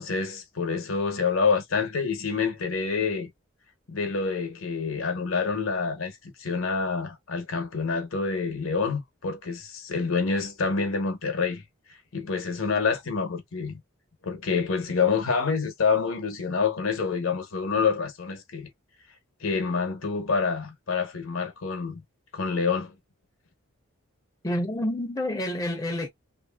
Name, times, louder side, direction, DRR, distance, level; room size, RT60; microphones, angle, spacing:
voice 1, 0.0-3.3 3.9-13.8 14.2-18.7 19.4-22.0 22.3-23.0, left 5 dB, 70° left, 0.8 m, -27 dB
voice 2, 24.4-26.1, left 1 dB, 15° left, 0.5 m, -28 dB
2.8 x 2.6 x 2.2 m
head